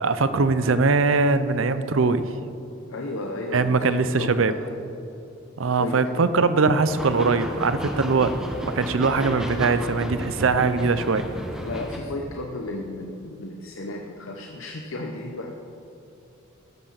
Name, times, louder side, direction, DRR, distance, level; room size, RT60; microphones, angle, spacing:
voice 1, 0.0-2.2 3.5-4.5 5.6-8.3 8.6-11.3, right 4 dB, 80° right, 12 dB, 0.6 m, -21 dB
voice 2, 2.9-4.7 5.7-6.4 11.6-15.5, left 2 dB, 85° left, 2 dB, 0.8 m, -34 dB
sound 1, 6.9-12.0, equal, 5° right, 0.9 m, -32 dB
14.0 x 10.0 x 4.1 m, 2.8 s
head